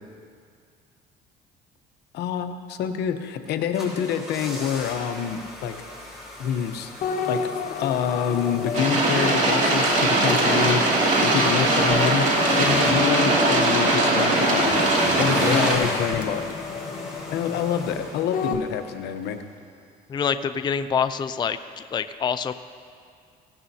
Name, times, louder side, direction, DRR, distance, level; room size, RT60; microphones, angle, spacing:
voice 1, 2.1-5.7 6.4-10.9 11.2-12.3 12.6-14.8 15.1-16.4 17.3-19.4, left 8 dB, 80° left, 7 dB, 0.9 m, -27 dB
sound 1, 3.5-19.0 19.2-19.3, left 1 dB, 5° right, 4.3 m, -37 dB
sound 2, 7.0-18.6, left 5 dB, 55° left, 0.9 m, -30 dB
sound 3, 8.7-15.7, right 2 dB, 45° right, 2.5 m, -21 dB
voice 2, 20.1-21.6 21.9-22.5, left 7 dB, 25° left, 11 dB, 0.4 m, -25 dB
17.5 x 16.0 x 2.8 m, 2.2 s
cardioid pair, 110°, 17 cm